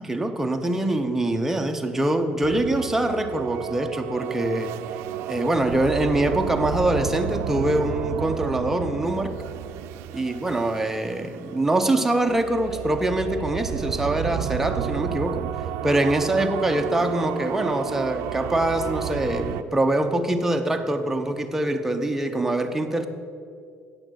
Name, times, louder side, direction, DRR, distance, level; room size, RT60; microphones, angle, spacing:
voice 1, 0.0-4.7 5.3-9.3 10.1-15.4 15.8-23.1, right 1 dB, 10° right, 5 dB, 0.7 m, -24 dB
sound 1, 2.4-19.6, right 10 dB, 75° right, 0.4 m, -32 dB
8.9 x 6.4 x 6.3 m, 2.4 s
cardioid pair, 115°, 5 cm